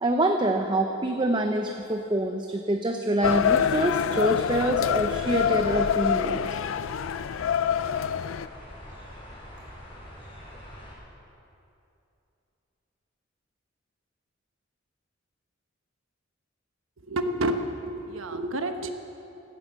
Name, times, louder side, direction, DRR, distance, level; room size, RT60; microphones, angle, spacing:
voice 1, 0.0-6.4, right 1 dB, 25° right, 4 dB, 0.7 m, -26 dB
sound 1, 3.2-8.5, left 8 dB, 80° left, 0.4 m, -26 dB
sound 2, 5.1-10.9, equal, 30° left, 4.1 m, -43 dB
voice 2, 17.1-18.9, right 1 dB, 85° right, 6 dB, 1.1 m, -29 dB
16.5 x 12.5 x 6.1 m, 2.8 s
head